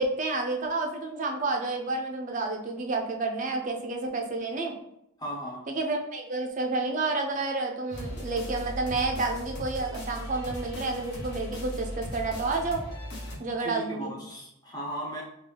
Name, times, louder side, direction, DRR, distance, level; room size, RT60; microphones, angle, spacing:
voice 1, 0.0-4.7 5.7-12.8 13.4-14.1, right 3 dB, 35° right, 2 dB, 0.4 m, -30 dB
voice 2, 5.2-5.7 13.2-13.3 13.6-15.2, right 1 dB, 20° left, -3 dB, 0.7 m, -36 dB
sound 1, 7.9-13.4, equal, 50° left, 0.9 m, -38 dB
3.6 x 2.3 x 3.2 m, 0.81 s
head